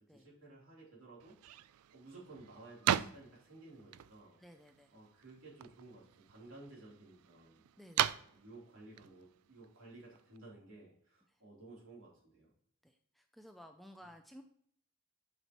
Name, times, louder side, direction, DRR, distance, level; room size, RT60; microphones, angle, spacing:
voice 1, 0.1-1.6 1.9-4.4 4.9-7.6 8.3-12.5, right 2 dB, 65° right, -4 dB, 3.2 m, -55 dB
sound 1, 1.2-10.4, right 11 dB, 90° right, 0.3 m, -40 dB
voice 2, 4.4-4.9 7.8-8.2 11.3-11.4 12.8-14.4, equal, ahead, 5 dB, 0.4 m, -56 dB
8.2 x 5.7 x 3.0 m, 0.64 s
head